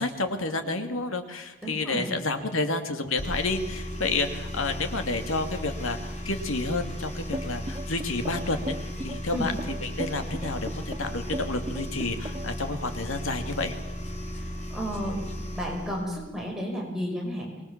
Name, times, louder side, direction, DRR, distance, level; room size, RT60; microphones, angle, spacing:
voice 1, 0.0-8.8 9.0-13.7, left 3 dB, 75° left, 6 dB, 2.5 m, -30 dB
voice 2, 1.6-2.1 9.3-9.5 14.3-14.4 14.7-15.2 15.5-17.6, equal, ahead, -2 dB, 5.6 m, -32 dB
sound 1, 3.2-16.1, equal, 35° left, 4.0 m, -36 dB
sound 2, 7.3-12.6, right 1 dB, 20° right, 0.8 m, -36 dB
25.0 x 22.0 x 7.4 m, 1.0 s
head